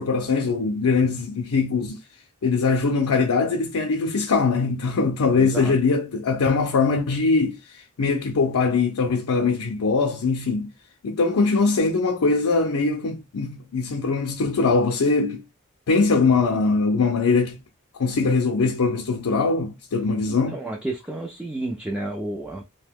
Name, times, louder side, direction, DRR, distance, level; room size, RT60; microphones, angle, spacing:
voice 1, 0.0-2.0 2.4-10.7 11.0-15.4 15.9-17.6 17.9-20.6, left 4 dB, 75° left, 0.5 m, -22 dB
voice 2, 5.4-5.8 20.5-22.6, right 2 dB, 5° right, 0.4 m, -31 dB
2.8 x 2.2 x 3.5 m
head